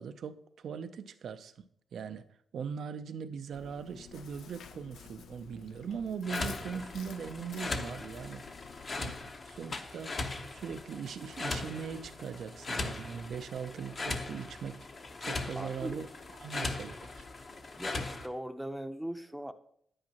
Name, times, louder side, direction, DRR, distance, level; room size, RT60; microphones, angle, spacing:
voice 1, 0.0-1.6 1.9-2.2 2.5-8.4 9.0-10.2 10.5-14.9 15.2-16.1 16.4-17.3, right 6 dB, 75° right, 0.5 m, -40 dB
Chewing mastication, 3.5-9.3, left 8 dB, 80° left, 0.3 m, -52 dB
sound 1, 6.2-18.3, left 3 dB, 45° left, 0.9 m, -39 dB
voice 2, 15.5-16.0 17.8-19.5, equal, 5° right, 0.6 m, -39 dB
9.5 x 8.8 x 2.9 m
cardioid pair, 75°, 0 cm